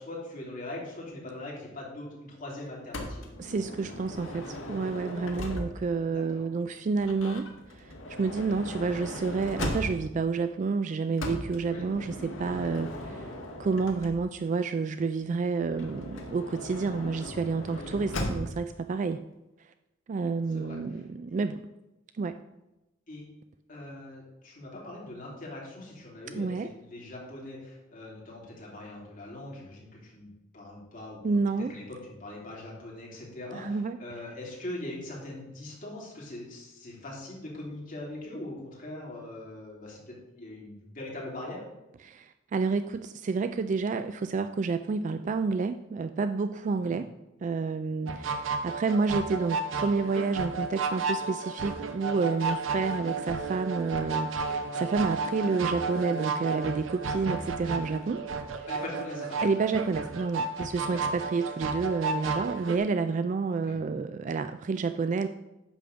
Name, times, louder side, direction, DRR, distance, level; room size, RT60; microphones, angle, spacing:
voice 1, 0.0-3.3 6.1-6.5 11.7-11.9 17.7-17.9 20.5-20.8 23.1-23.3 23.7-30.3 30.5-31.4 31.7-41.6 46.8-47.0 58.7-59.4 60.9-61.1 63.7-63.8, left 1 dB, 45° left, -3 dB, 2.8 m, -41 dB
Motor vehicle (road) / Sliding door, 2.9-6.0 7.0-10.2 11.2-14.5 15.7-18.7, left 1 dB, 85° left, 1.5 m, -38 dB
voice 2, 3.4-7.9 8.2-13.3 13.6-19.2 20.1-21.7 22.2-22.4 26.3-26.7 31.2-31.7 33.5-34.0 42.0-47.1 47.4-58.2 59.4-65.3, right 4 dB, 40° right, 10 dB, 0.3 m, -29 dB
sound 1, 48.1-62.8, right 4 dB, 85° right, 0.8 m, -32 dB
10.0 x 3.7 x 6.8 m, 0.96 s
head